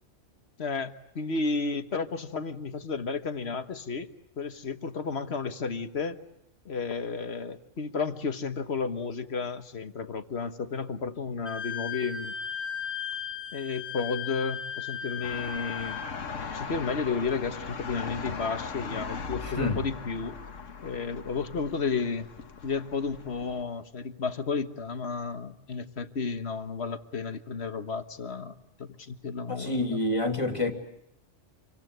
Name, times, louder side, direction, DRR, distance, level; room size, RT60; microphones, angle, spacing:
voice 1, 0.6-4.1 4.4-6.2 6.7-12.3 13.5-16.0 16.5-20.4 20.8-22.3 22.6-30.0, left 4 dB, 60° left, 1.7 m, -32 dB
Wind instrument woodwind instrument, 11.4-16.1, left 8 dB, 35° right, 5.3 m, -36 dB
sound 1, 15.2-23.6, left 5 dB, 85° left, 1.8 m, -39 dB
voice 2, 19.4-19.9 29.5-30.7, left 2 dB, 25° left, 2.9 m, -28 dB
27.0 x 25.0 x 8.0 m
omnidirectional pair, 1.3 m